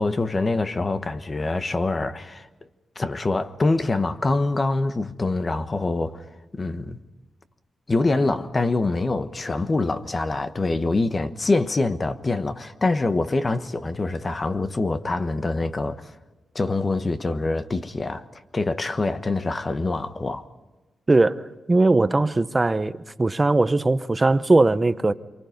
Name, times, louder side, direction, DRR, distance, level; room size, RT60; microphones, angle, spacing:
voice 1, 0.0-2.5 3.0-6.2 6.5-7.0 7.9-16.1 16.5-18.2 18.5-20.4, left 3 dB, 30° left, 1.2 m, -25 dB
voice 2, 21.1-21.4 21.7-22.9 23.2-25.1, right 2 dB, 25° right, 0.9 m, -19 dB
27.5 x 24.0 x 5.3 m
cardioid pair, 90°, 0 cm